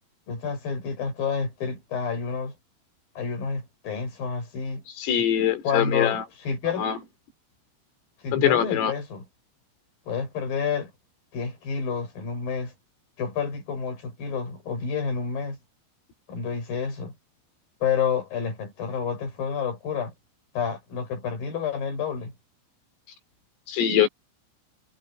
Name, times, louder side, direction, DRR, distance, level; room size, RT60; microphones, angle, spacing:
voice 1, 0.3-2.5 3.2-4.8 5.6-6.9 8.2-9.2 10.1-10.9 11.3-12.7 13.2-15.6 16.3-17.1 17.8-20.1 20.5-22.3, left 6 dB, 45° left, 7.8 m, -29 dB
voice 2, 5.0-6.2 6.8-7.0 8.3-8.9 23.7-24.1, left 9 dB, 85° left, 6.4 m, -22 dB
omnidirectional pair, 5.8 m